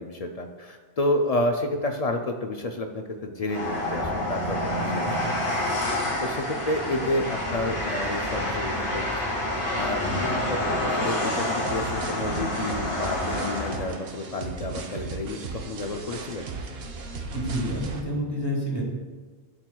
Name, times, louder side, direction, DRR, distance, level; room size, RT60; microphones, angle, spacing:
voice 1, 0.0-5.3 5.9-9.4 9.8-10.6 10.9-16.5, left 1 dB, 50° left, 4 dB, 0.5 m, -30 dB
Train, 3.5-14.0, left 1 dB, 80° left, 2.3 m, -28 dB
voice 2, 4.8-5.2 10.0-10.3 17.3-18.8, equal, 25° left, -3 dB, 1.5 m, -29 dB
sound 1, 11.4-18.0, right 3 dB, 70° right, 0.9 m, -37 dB
11.5 x 4.5 x 2.3 m, 1.4 s
omnidirectional pair, 1.0 m